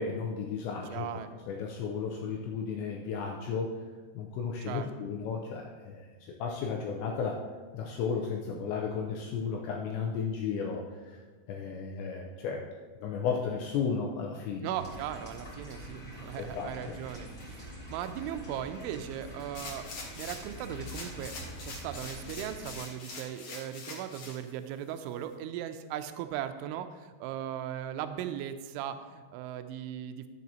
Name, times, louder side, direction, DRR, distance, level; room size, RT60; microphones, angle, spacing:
voice 1, 0.0-1.1 1.5-3.8 4.2-7.4 7.7-11.2 11.5-12.7 13.0-14.7 16.4-16.9, left 5 dB, 90° left, 0 dB, 2.6 m, -34 dB
voice 2, 0.9-1.4 4.7-4.9 14.6-19.9 20.2-30.3, right 10 dB, 85° right, 9 dB, 2.8 m, -38 dB
sound 1, 14.7-22.8, equal, 30° left, 1.3 m, -45 dB
sound 2, 19.5-20.5 20.8-24.4 24.9-25.0, left 3 dB, 60° left, 2.2 m, -44 dB
12.0 x 7.4 x 2.9 m, 1.4 s
omnidirectional pair, 5.8 m